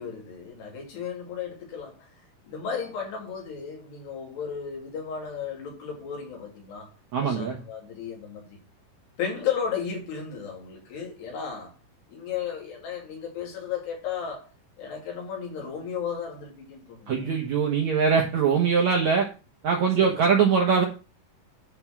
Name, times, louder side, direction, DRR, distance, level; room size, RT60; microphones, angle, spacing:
voice 1, 0.0-2.1 2.5-8.6 9.2-11.8 12.1-14.5 14.8-17.3 18.9-19.0 20.0-20.3, left 7 dB, 75° left, 4.8 m, -34 dB
voice 2, 7.1-7.6 17.1-19.3 19.6-20.8, right 6 dB, 65° right, 1.8 m, -22 dB
10.5 x 4.5 x 5.9 m
omnidirectional pair, 4.8 m